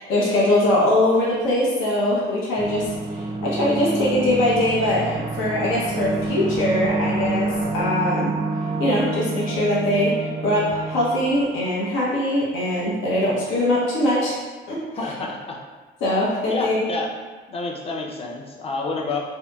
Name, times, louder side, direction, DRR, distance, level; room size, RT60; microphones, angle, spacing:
voice 1, 0.0-8.3 8.8-14.3 14.7-14.8 16.0-16.9, left 1 dB, 90° left, -5 dB, 0.7 m, -22 dB
sound 1, 2.6-12.3, right 2 dB, 30° right, 0.3 m, -28 dB
voice 2, 15.0-15.6 16.5-17.1 17.5-19.2, left 3 dB, 30° left, -1 dB, 0.5 m, -28 dB
2.7 x 2.7 x 2.2 m, 1.3 s
cardioid pair, 90°, 20 cm